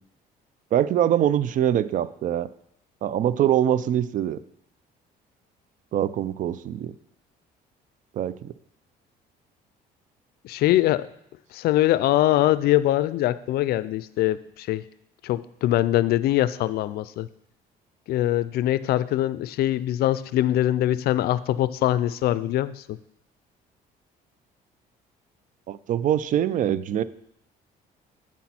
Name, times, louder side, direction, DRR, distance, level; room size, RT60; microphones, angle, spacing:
voice 1, 0.7-2.5 3.0-4.4 5.9-6.9 8.2-8.5 25.7-27.0, right 10 dB, 50° right, 16 dB, 0.4 m, -23 dB
voice 2, 10.4-11.1 11.5-14.8 15.2-17.3 18.1-23.0, left 14 dB, 70° left, 17 dB, 0.4 m, -23 dB
8.4 x 6.0 x 4.3 m, 0.74 s
cardioid pair, 110°, 17 cm